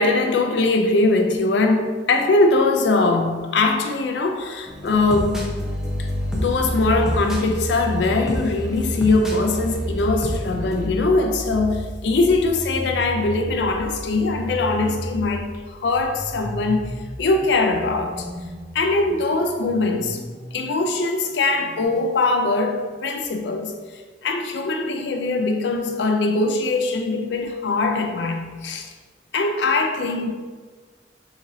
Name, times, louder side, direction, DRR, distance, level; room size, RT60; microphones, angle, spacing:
voice 1, 0.0-5.5 6.0-18.3 18.7-20.2 20.5-28.9 29.3-30.3, left 3 dB, 70° left, 0.4 m, -21 dB
sound 1, 4.7-10.9, equal, 5° right, 0.5 m, -27 dB
sound 2, 11.5-21.9, equal, 35° left, 0.9 m, -35 dB
3.9 x 3.0 x 2.7 m
head